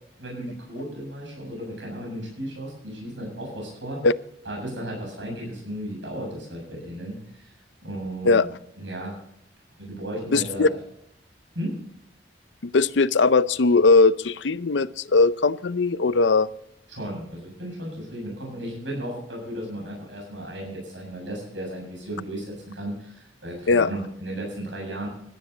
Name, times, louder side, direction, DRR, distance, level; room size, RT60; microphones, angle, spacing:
voice 1, 0.2-4.0 4.4-7.5 7.8-8.4 8.8-9.2 9.8-10.7 11.5-11.8 16.9-25.1, right 1 dB, 80° right, -2 dB, 7.5 m, -35 dB
voice 2, 10.3-10.7 12.6-16.5 23.7-23.9, left 3 dB, 75° left, 16 dB, 0.6 m, -19 dB
17.0 x 12.5 x 4.0 m, 0.73 s
head